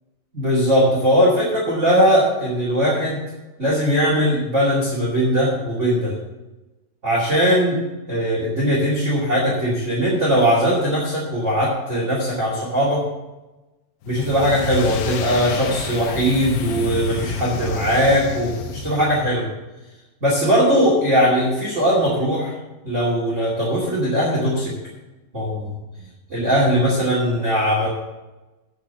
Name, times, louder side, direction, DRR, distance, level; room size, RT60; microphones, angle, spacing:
voice 1, 0.3-3.2 3.6-6.1 7.0-7.8 8.1-13.0 14.0-19.5 20.2-22.5 22.8-24.7 25.3-25.7 26.3-27.9, equal, 25° right, -6 dB, 1.7 m, -19 dB
sound 1, 14.0-19.3, left 5 dB, 75° left, 2.5 m, -30 dB
8.6 x 6.6 x 7.3 m, 1.1 s
omnidirectional pair, 4.9 m